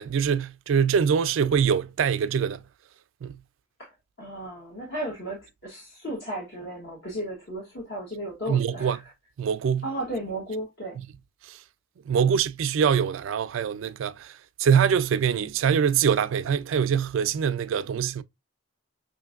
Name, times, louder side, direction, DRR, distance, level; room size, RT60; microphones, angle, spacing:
voice 1, 0.0-2.6 3.2-3.4 8.5-9.0 9.4-9.8 11.5-11.6 12.1-18.2, right 7 dB, 80° right, 0.3 m, -24 dB
voice 2, 3.8-9.1 9.8-11.0 12.2-12.4, right 1 dB, 60° left, 1.2 m, -35 dB
5.6 x 2.6 x 2.4 m
head